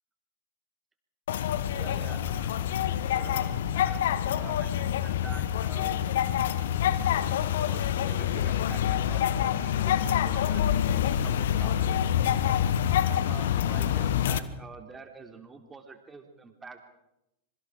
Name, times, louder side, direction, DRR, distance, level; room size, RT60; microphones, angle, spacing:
sound 1, 1.3-14.4, left 10 dB, 60° left, 1.1 m, -26 dB
voice 1, 1.7-6.6 7.5-12.2 13.1-16.8, right 4 dB, 15° right, 5 dB, 3.3 m, -47 dB
25.5 x 23.5 x 4.9 m, 0.87 s
figure-of-eight pair, 90°, 0 cm